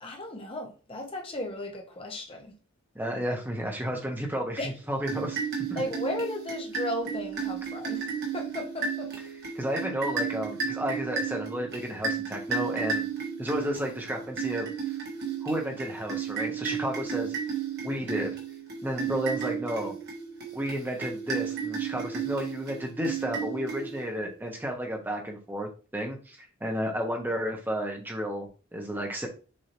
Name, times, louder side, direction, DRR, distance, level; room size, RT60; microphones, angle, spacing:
voice 1, 0.0-2.5 4.6-4.7 5.8-8.0 8.3-9.1, left 1 dB, 25° left, 0.9 m, -35 dB
voice 2, 2.9-5.4 5.7-5.8 9.3-13.0 13.4-14.7 15.4-17.3 17.8-18.3 18.8-20.0 20.5-29.3, equal, 10° right, 0.9 m, -32 dB
sound 1, 5.0-24.2, right 6 dB, 50° right, 1.4 m, -33 dB
6.4 x 2.8 x 3.0 m
head